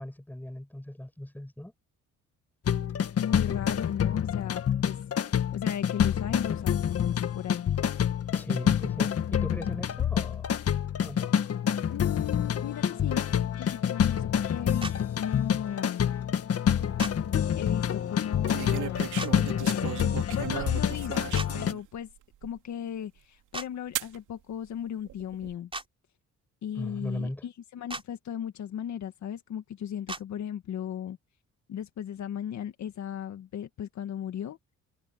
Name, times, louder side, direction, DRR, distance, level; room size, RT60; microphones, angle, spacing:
voice 1, 0.0-1.7 8.3-10.5 11.0-11.3 26.7-27.4, left 1 dB, 5° left, 7.7 m, -38 dB
sound 1, 2.7-21.7, left 8 dB, 50° left, 1.7 m, -27 dB
voice 2, 3.2-5.0 5.5-7.7 11.9-13.3 13.6-16.1 17.6-19.1 19.3-19.9 20.3-22.1 22.4-25.7 26.6-31.2 31.7-34.6, left 9 dB, 70° left, 1.8 m, -36 dB
sound 2, 14.8-15.0 17.0-17.1 19.2-19.3 21.3-21.5 23.5-23.7 25.7-25.9 27.9-28.0 30.1-30.2, right 2 dB, 20° right, 3.8 m, -36 dB
sound 3, 16.8-17.2 18.5-21.8 22.4-22.5 24.0-24.2 25.1-25.5, right 13 dB, 85° right, 2.7 m, -36 dB
cardioid pair, 90°, 30 cm